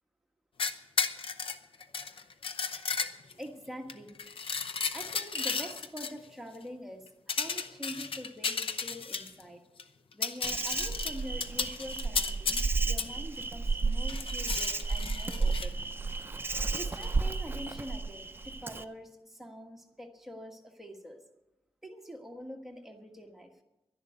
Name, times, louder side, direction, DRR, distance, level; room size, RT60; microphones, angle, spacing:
sound 1, 0.6-3.4 3.9-6.1 7.3-9.4 9.8-9.9 10.1-12.7 13.0-13.1 14.1-15.7 16.9-17.1, left 5 dB, 60° left, 0.8 m, -34 dB
voice 1, 2.9-4.2 4.9-9.6 10.1-15.8 16.1-16.3 16.7-21.2 21.8-23.5, equal, 5° right, 2 dB, 1.4 m, -45 dB
Insect, 10.4-18.8, right 3 dB, 20° right, 0.6 m, -32 dB
12.0 x 11.0 x 8.6 m, 0.97 s
wide cardioid pair, 160°, 10 cm